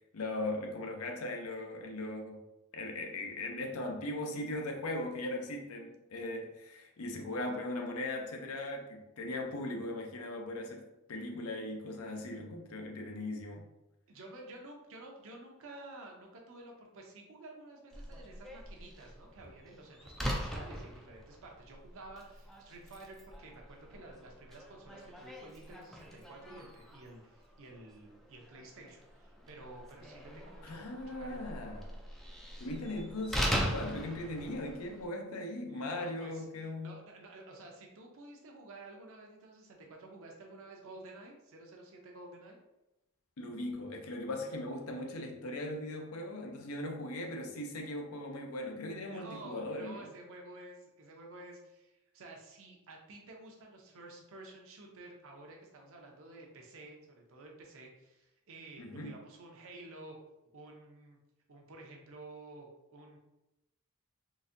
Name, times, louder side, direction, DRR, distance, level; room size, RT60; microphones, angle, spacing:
voice 1, 0.1-2.4 2.7-13.7 30.6-31.9 32.6-37.0 43.4-50.1 58.8-59.2, left 1 dB, 70° left, 0.6 m, -39 dB
voice 2, 14.1-31.6 35.7-36.5 36.8-42.6 48.9-60.2 60.5-61.2 61.5-63.2, right 2 dB, 65° right, 0.7 m, -51 dB
Slam, 17.9-35.1, equal, ahead, 0.3 m, -41 dB
3.9 x 2.6 x 2.6 m
head